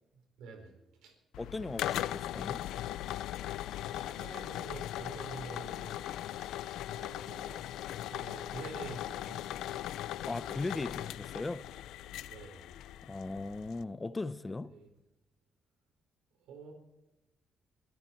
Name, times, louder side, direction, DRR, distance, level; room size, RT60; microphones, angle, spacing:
voice 1, 0.1-1.2 3.8-6.6 6.9-7.7 7.9-9.5 10.8-11.0 12.2-12.7 14.7-14.9 16.4-16.7, right 4 dB, 90° right, 4.4 m, -48 dB
sound 1, 1.3-13.8, left 13 dB, 85° left, 0.5 m, -39 dB
voice 2, 1.4-2.7 10.3-11.7 13.0-14.7, left 2 dB, 20° left, 0.8 m, -38 dB
23.5 x 13.0 x 4.5 m
cardioid pair, 90°, 0 cm